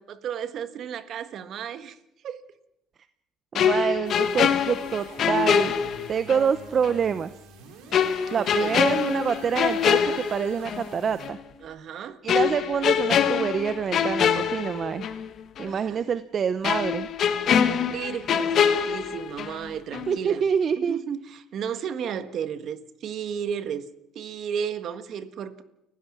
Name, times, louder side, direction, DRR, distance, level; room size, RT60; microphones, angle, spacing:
voice 1, 0.0-2.0 2.2-2.4 8.3-8.8 11.6-12.2 15.7-16.1 17.8-20.4 20.8-23.9 24.1-25.6, right 8 dB, 55° right, 1.5 m, -34 dB
sound 1, 3.5-6.5 6.8-7.0 7.9-10.9 11.2-11.4 12.3-15.3 15.6-15.7 16.6-19.7 19.9-20.2, left 8 dB, 55° left, 1.6 m, -24 dB
voice 2, 3.5-5.7 6.1-7.4 8.3-11.4 12.2-15.1 15.6-17.1 20.1-21.0, right 7 dB, 40° right, 0.7 m, -26 dB
sound 2, 4.0-11.3, right 5 dB, 90° right, 4.5 m, -48 dB
29.5 x 16.0 x 6.0 m
cardioid pair, 110°, 0 cm